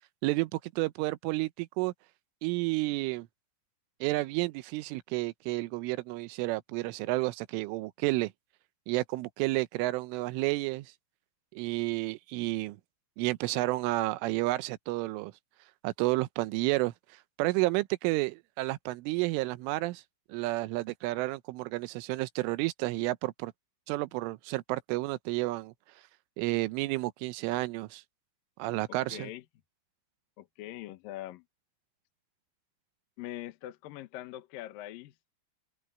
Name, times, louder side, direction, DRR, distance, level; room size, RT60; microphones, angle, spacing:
voice 1, 0.2-1.9 2.4-3.3 4.0-8.3 8.9-10.9 11.5-12.8 13.2-15.3 15.8-16.9 17.4-20.0 20.3-23.5 23.9-25.7 26.4-28.0 28.6-29.3, right 21 dB, 90° right, 3.3 m, -31 dB
voice 2, 28.9-29.4 30.4-31.4 33.2-35.3, left 14 dB, 70° left, 2.2 m, -43 dB
open air
omnidirectional pair, 5.5 m